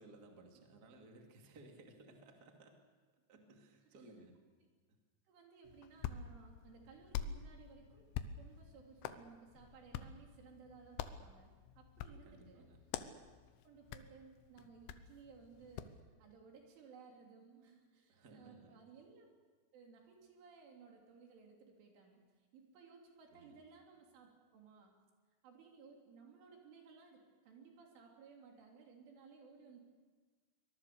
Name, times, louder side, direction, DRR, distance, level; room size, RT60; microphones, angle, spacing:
voice 1, 0.0-2.8 3.3-4.4 4.9-5.0 12.2-12.8 18.1-18.8 23.3-23.6, right 2 dB, 35° right, 2 dB, 1.7 m, -59 dB
voice 2, 5.3-8.1 8.4-12.7 13.0-13.1 13.6-19.3 19.7-25.0 25.4-29.8, right 5 dB, 75° right, 1 dB, 5.6 m, -59 dB
Hands, 5.6-16.0, left 9 dB, 80° left, 3.1 m, -47 dB
24.0 x 21.0 x 6.9 m, 1.4 s
omnidirectional pair, 5.7 m